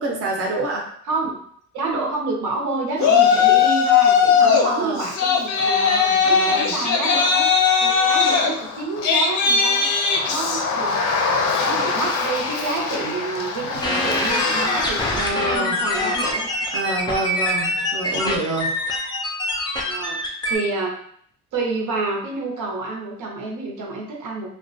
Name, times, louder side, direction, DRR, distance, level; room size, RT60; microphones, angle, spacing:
voice 1, 0.0-0.9 4.4-5.0 5.6-6.7 15.1-15.8 16.7-18.7, right 2 dB, 50° right, -1 dB, 0.6 m, -27 dB
voice 2, 1.1-1.4 1.7-6.0 6.2-7.5 7.8-9.9 10.3-11.0 11.6-16.5 18.2-18.5 19.9-21.0 21.5-24.5, right 3 dB, 90° right, -2 dB, 0.7 m, -28 dB
Yell, 3.0-4.7 5.0-15.4, left 6 dB, 70° left, 0.5 m, -20 dB
sound 1, 13.8-20.6, left 1 dB, 15° left, 0.3 m, -25 dB
2.3 x 2.1 x 2.5 m, 0.63 s
cardioid pair, 125°, 30 cm